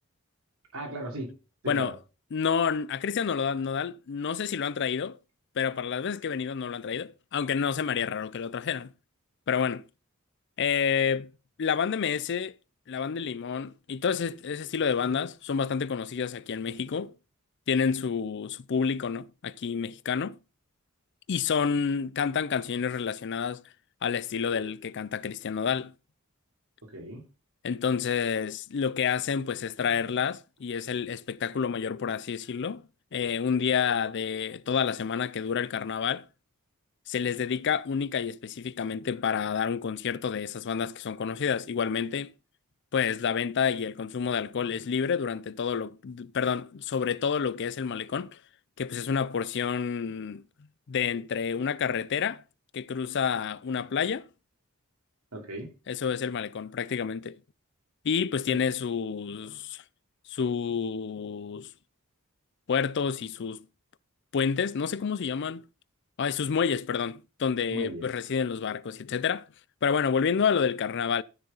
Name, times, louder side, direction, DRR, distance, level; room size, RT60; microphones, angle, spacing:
voice 1, 0.7-1.3 1.6-1.9 26.8-27.2 55.3-55.7 58.5-58.6 67.7-68.1, right 1 dB, 80° right, 3.2 m, -37 dB
voice 2, 2.3-5.2 5.6-8.9 9.5-9.8 10.6-11.3 11.6-12.6 12.9-17.1 17.7-20.4 21.3-23.6 24.0-25.9 27.6-32.8 33.1-36.2 37.1-42.3 42.9-48.4 48.8-50.4 50.9-52.4 52.7-54.3 55.9-57.4 58.0-59.8 60.3-61.7 62.7-63.7 64.3-65.6 66.2-69.5 69.8-71.2, left 6 dB, 55° left, 0.4 m, -29 dB
12.5 x 6.6 x 4.0 m
head